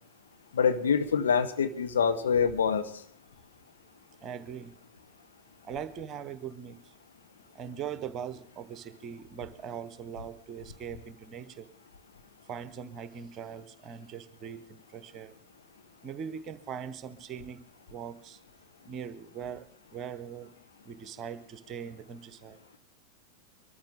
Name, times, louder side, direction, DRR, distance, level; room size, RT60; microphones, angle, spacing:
voice 1, 0.5-2.9, left 6 dB, 65° left, 8 dB, 1.2 m, -25 dB
voice 2, 4.2-4.7 5.6-6.8 7.5-11.7 12.5-15.3 16.0-17.6 17.9-18.4 18.8-19.7 19.9-20.5 20.8-22.6, right 8 dB, 30° right, 13 dB, 1.2 m, -41 dB
23.5 x 13.5 x 3.8 m, 0.66 s
figure-of-eight pair, 90°, 0 cm